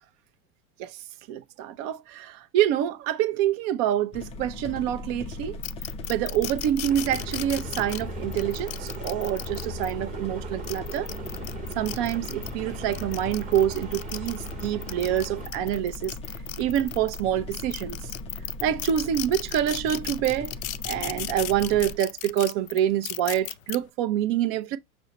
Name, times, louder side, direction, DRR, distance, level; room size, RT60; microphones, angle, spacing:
voice 1, 1.3-5.6 6.1-11.1 11.8-16.1 16.6-18.0 18.6-20.5 20.8-24.8, right 11 dB, 40° right, 0.5 m, -26 dB
sound 1, 4.1-22.0, left 1 dB, 15° left, 0.3 m, -39 dB
sound 2, 5.6-9.9 10.5-12.5 12.9-17.2 17.5-23.8, left 15 dB, 70° left, 0.5 m, -36 dB
sound 3, 6.8-15.5, right 1 dB, 20° right, 1.0 m, -39 dB
6.2 x 2.1 x 3.9 m
hypercardioid pair, 100°, 43 cm